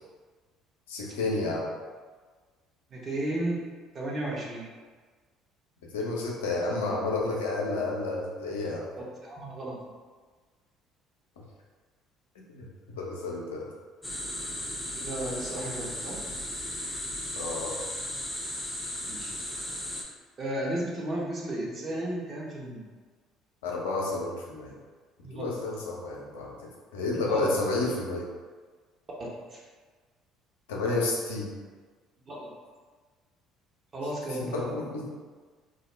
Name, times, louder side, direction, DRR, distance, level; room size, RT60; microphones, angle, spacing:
voice 1, 0.9-1.7 5.9-8.9 12.5-13.7 17.4-17.7 23.6-24.7 25.2-26.5 26.9-28.3 30.7-31.5 34.5-35.1, left 3 dB, 80° left, -2 dB, 0.5 m, -30 dB
voice 2, 2.9-3.6 3.9-4.7 9.0-9.9 15.0-16.2 19.1-19.3 20.4-22.8 25.2-25.5 27.3-27.5 29.2-29.6 32.3-32.5 33.9-34.7, right 1 dB, 40° right, -3 dB, 0.7 m, -34 dB
sound 1, 14.0-20.0, left 1 dB, 10° left, 0.6 m, -36 dB
2.3 x 2.0 x 3.2 m, 1.4 s
hypercardioid pair, 60°, 0 cm